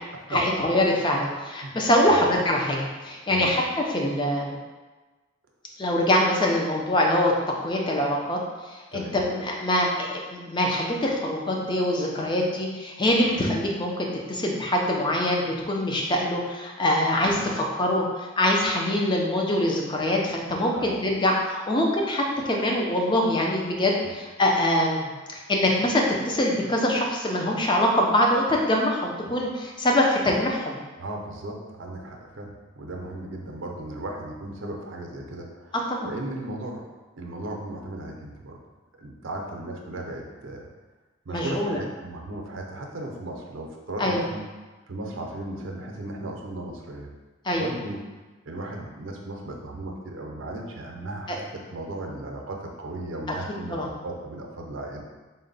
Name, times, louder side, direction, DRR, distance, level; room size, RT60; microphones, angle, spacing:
voice 1, 0.3-4.5 5.8-7.3 7.6-8.4 8.7-30.8 35.9-36.1 41.3-41.8 44.0-44.2 47.4-47.7 51.3-51.4 53.7-53.9, left 1 dB, 25° left, -1 dB, 0.5 m, -24 dB
voice 2, 3.3-3.6 8.9-9.2 13.2-13.4 17.4-17.5 20.7-20.9 24.0-24.2 29.3-29.4 31.0-35.7 36.0-36.8 37.2-38.6 39.0-40.7 41.3-44.4 44.9-47.1 47.5-48.0 48.5-55.0, right 1 dB, 75° right, 1 dB, 0.6 m, -36 dB
3.8 x 2.2 x 3.9 m, 1.2 s
head